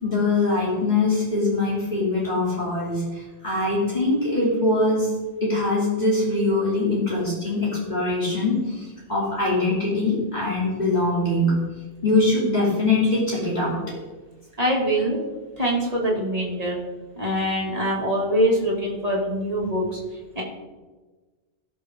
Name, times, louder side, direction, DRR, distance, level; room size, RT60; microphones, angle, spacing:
voice 1, 0.0-5.1 5.4-11.6 12.0-13.8 15.1-15.2, left 2 dB, 35° left, -6 dB, 3.2 m, -23 dB
voice 2, 14.6-15.2 15.6-16.8 17.2-20.0 20.3-20.4, equal, 30° right, -3 dB, 2.6 m, -23 dB
18.0 x 6.9 x 3.7 m, 1.3 s
omnidirectional pair, 1.2 m